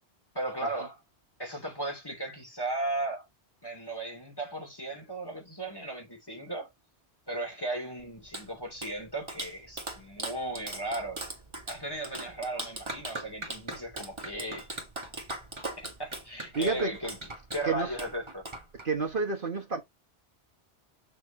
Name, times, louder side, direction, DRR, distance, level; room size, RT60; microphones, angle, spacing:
voice 1, 0.3-0.9 1.4-3.2 3.6-6.7 7.3-11.2 11.7-14.7 15.8-17.2 17.5-18.5, right 2 dB, 20° left, 2.9 m, -36 dB
Clapping, 8.0-19.1, right 2 dB, 25° right, 1.8 m, -40 dB
voice 2, 16.5-16.9 17.6-17.9 18.8-19.8, right 4 dB, 50° right, 1.3 m, -29 dB
6.7 x 6.1 x 3.0 m
omnidirectional pair, 1.2 m